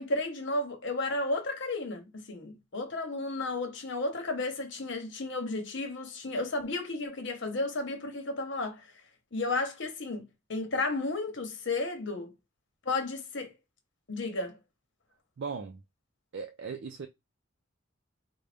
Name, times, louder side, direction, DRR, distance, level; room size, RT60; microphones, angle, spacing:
voice 1, 0.0-8.9 9.3-12.3 12.8-13.5 14.1-14.6, left 2 dB, 60° left, 1.0 m, -33 dB
voice 2, 15.4-15.8 16.3-17.1, right 5 dB, 60° right, 0.4 m, -38 dB
3.9 x 2.2 x 3.4 m
head